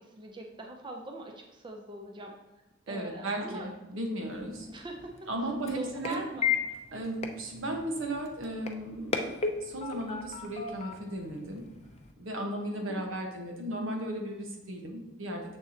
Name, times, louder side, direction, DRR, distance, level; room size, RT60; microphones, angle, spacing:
voice 1, 0.0-2.3 2.9-3.7 4.7-5.3 5.7-6.5 12.9-13.0, right 1 dB, 25° right, 2 dB, 0.6 m, -42 dB
voice 2, 2.9-4.7 5.3-6.2 6.9-11.7 12.2-15.6, right 1 dB, 80° right, 2 dB, 1.2 m, -35 dB
sound 1, 4.2-12.1, left 6 dB, 30° left, 0.5 m, -36 dB
6.9 x 6.7 x 2.8 m, 1.1 s
head